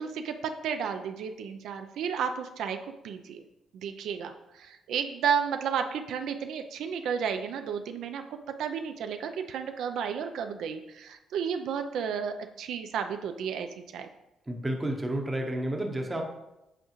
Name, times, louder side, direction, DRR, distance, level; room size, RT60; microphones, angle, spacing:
voice 1, 0.0-2.8 3.0-3.4 3.7-8.2 8.6-13.7 13.9-14.1, right 7 dB, 75° right, 7 dB, 0.4 m, -32 dB
voice 2, 14.5-16.2, right 1 dB, 15° right, 3 dB, 0.7 m, -31 dB
7.8 x 4.8 x 3.0 m, 0.91 s
cardioid pair, 160°, 0 cm